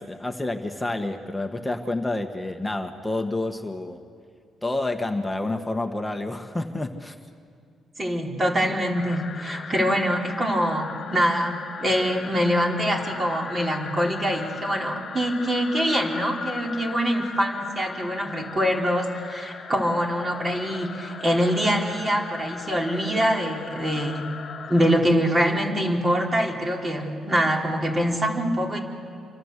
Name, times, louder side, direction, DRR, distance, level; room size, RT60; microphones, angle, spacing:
voice 1, 0.0-4.0 4.6-7.1, left 2 dB, 10° left, 5 dB, 1.5 m, -29 dB
voice 2, 8.0-24.2 24.7-28.8, equal, 30° right, 0 dB, 4.1 m, -24 dB
sound 1, 8.9-25.0, left 6 dB, 50° left, 1.6 m, -38 dB
27.5 x 24.5 x 8.3 m, 2.3 s
cardioid pair, 90°, 0 cm